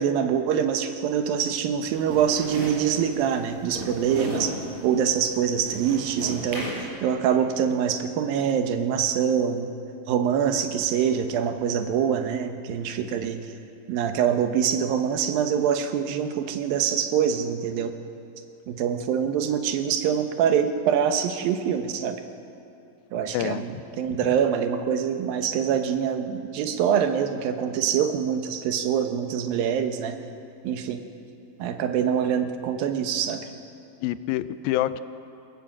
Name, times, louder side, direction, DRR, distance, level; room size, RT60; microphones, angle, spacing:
voice 1, 0.0-4.5 4.8-9.7 10.1-13.4 13.9-17.9 18.7-22.2 23.1-30.2 30.6-31.0 31.6-33.4, right 8 dB, 85° right, 7 dB, 2.9 m, -25 dB
sound 1, 1.8-6.9, right 1 dB, 50° right, 6.9 m, -35 dB
voice 2, 23.3-23.7 24.1-24.2 34.0-35.0, left 13 dB, 85° left, 14 dB, 2.5 m, -27 dB
28.0 x 16.5 x 7.3 m, 2.7 s
omnidirectional pair, 4.1 m